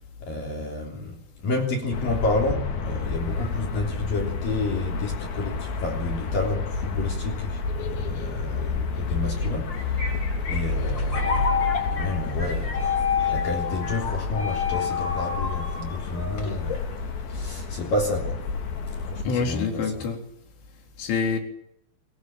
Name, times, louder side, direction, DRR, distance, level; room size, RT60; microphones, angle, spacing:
voice 1, 0.2-1.1 1.4-18.4 19.0-20.0, left 2 dB, 50° left, 1 dB, 4.8 m, -31 dB
sound 1, 1.9-19.2, left 4 dB, 65° left, 5.5 m, -30 dB
sound 2, 9.4-17.0, left 6 dB, 25° left, 4.3 m, -29 dB
voice 2, 19.2-20.2 21.0-21.4, left 5 dB, 85° left, 3 dB, 6.5 m, -26 dB
23.5 x 22.0 x 9.0 m, 0.73 s
omnidirectional pair, 5.5 m